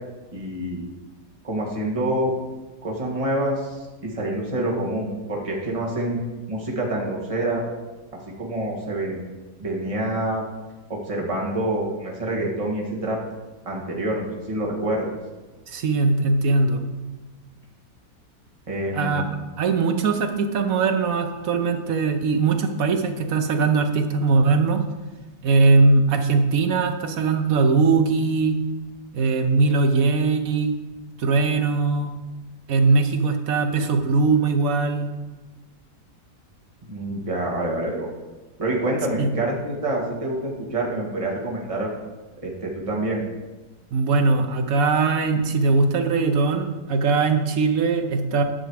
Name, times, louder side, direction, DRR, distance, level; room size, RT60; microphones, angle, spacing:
voice 1, 0.3-0.9 1.4-2.3 2.8-6.2 6.5-7.6 8.4-9.2 9.6-10.4 10.9-13.2 13.7-15.1 18.7-19.3 36.9-38.1 38.6-41.9 42.4-43.2, right 1 dB, 20° right, -3 dB, 1.7 m, -26 dB
voice 2, 15.7-16.8 18.9-19.2 19.6-24.8 25.4-28.5 29.1-30.7 31.2-32.1 32.7-35.1 39.2-39.3 43.9-48.4, right 4 dB, 60° right, 6 dB, 1.1 m, -20 dB
10.0 x 6.3 x 4.8 m, 1.2 s
omnidirectional pair, 1.8 m